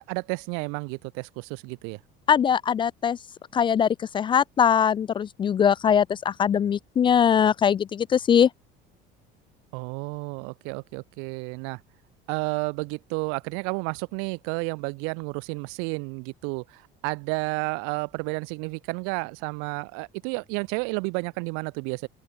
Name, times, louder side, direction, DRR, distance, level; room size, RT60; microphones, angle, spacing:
voice 1, 0.0-2.0 9.7-11.8 12.3-22.1, right 36 dB, 80° right, 4.4 m, -31 dB
voice 2, 2.3-3.2 3.5-3.9 4.1-8.5, left 8 dB, 25° left, 0.5 m, -21 dB
open air
cardioid pair, 160°, 20 cm